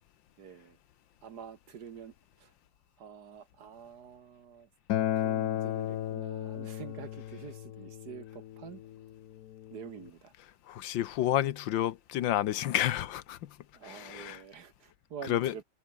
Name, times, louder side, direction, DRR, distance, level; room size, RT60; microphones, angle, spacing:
voice 1, 0.4-0.8 1.2-2.5 3.0-4.7 5.1-8.8 9.7-10.3 13.7-15.6, right 8 dB, 60° right, 1.7 m, -47 dB
Acoustic guitar, 4.9-10.1, left 12 dB, 65° left, 1.1 m, -35 dB
voice 2, 10.7-13.5 13.8-14.4 15.3-15.5, left 12 dB, 90° left, 1.6 m, -30 dB
omnidirectional pair, 2.0 m